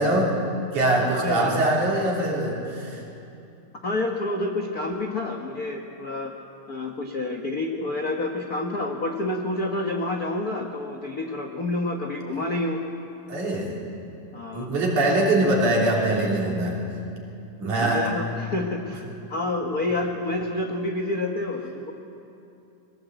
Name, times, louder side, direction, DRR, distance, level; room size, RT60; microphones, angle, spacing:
voice 1, 0.0-3.0 13.3-13.8 14.5-16.8 17.6-18.1, right 1 dB, 65° right, -2 dB, 4.5 m, -23 dB
voice 2, 1.0-1.6 3.8-6.3 6.7-12.8 14.3-14.7 17.8-21.9, left 2 dB, 75° left, 2 dB, 0.8 m, -28 dB
21.0 x 18.5 x 8.0 m, 2.8 s
omnidirectional pair, 3.8 m